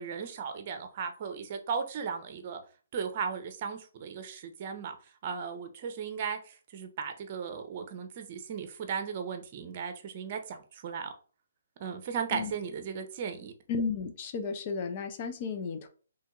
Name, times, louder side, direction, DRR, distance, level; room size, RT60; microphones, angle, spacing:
voice 1, 0.0-2.6 2.9-5.0 5.2-11.1 11.8-13.5, right 6 dB, 40° right, 0.8 m, -36 dB
voice 2, 13.7-15.9, left 5 dB, 40° left, 0.7 m, -33 dB
3.2 x 2.8 x 3.6 m
hypercardioid pair, 140°, 0 cm